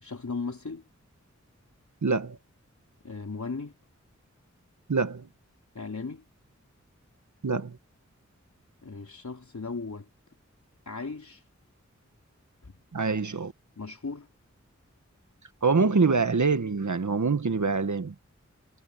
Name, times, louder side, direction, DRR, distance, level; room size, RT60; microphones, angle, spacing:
voice 1, 0.0-0.8 3.0-3.7 5.7-6.2 8.8-10.1 10.9-11.4 12.6-12.8 13.8-14.3, left 4 dB, 70° left, 4.0 m, -37 dB
voice 2, 2.0-2.4 4.9-5.3 7.4-7.8 12.9-13.5 15.6-18.1, right 4 dB, 75° right, 1.6 m, -25 dB
wide cardioid pair, 60°, 30 cm